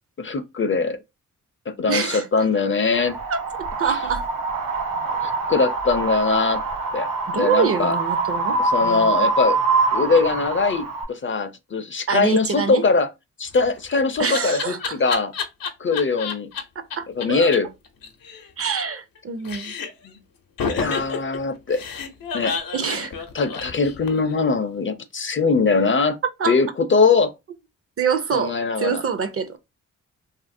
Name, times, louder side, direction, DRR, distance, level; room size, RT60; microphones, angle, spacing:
voice 1, 0.2-1.0 1.7-3.2 5.2-6.6 6.9-7.1 7.3-8.0 8.6-9.6 9.9-13.1 13.4-15.3 15.8-16.5 17.2-17.7 20.0-20.1 20.7-21.8 22.3-22.5 23.3-26.2 26.5-27.3 28.3-29.0, left 4 dB, 40° left, 0.4 m, -21 dB
voice 2, 1.9-2.3 3.3-4.3 7.3-9.3 12.1-12.8 14.2-15.0 17.0-17.5 18.6-19.7 22.7-23.1 26.4-26.6 28.0-29.6, right 6 dB, 45° right, 0.5 m, -25 dB
Wind, 2.9-11.0, right 3 dB, 90° right, 0.7 m, -24 dB
Laughter, 13.5-16.6 16.9-17.0 17.2-17.3 17.5-17.6 17.9-19.2 19.4-20.1 20.6-24.3, left 6 dB, 85° left, 0.7 m, -30 dB
2.7 x 2.5 x 2.5 m
cardioid pair, 60°, 33 cm